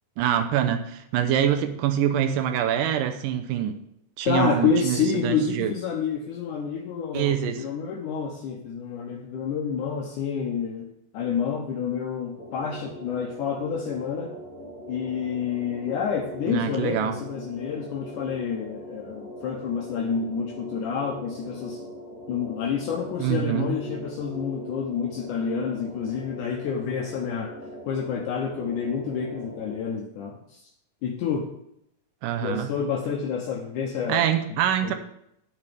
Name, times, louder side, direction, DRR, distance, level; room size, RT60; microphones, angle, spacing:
voice 1, 0.2-3.8 4.2-5.7 7.1-7.6 16.5-17.2 23.2-23.8 32.2-32.7 34.1-34.9, right 10 dB, 80° right, 8 dB, 2.4 m, -25 dB
voice 2, 4.3-10.9 11.1-14.3 14.9-21.8 22.3-27.5 27.9-30.6 31.0-31.5 32.4-34.3 34.8-34.9, left 6 dB, 75° left, 1 dB, 2.2 m, -28 dB
sound 1, 12.4-29.8, equal, 30° left, 2.6 m, -41 dB
9.9 x 9.6 x 3.5 m, 0.77 s
omnidirectional pair, 3.9 m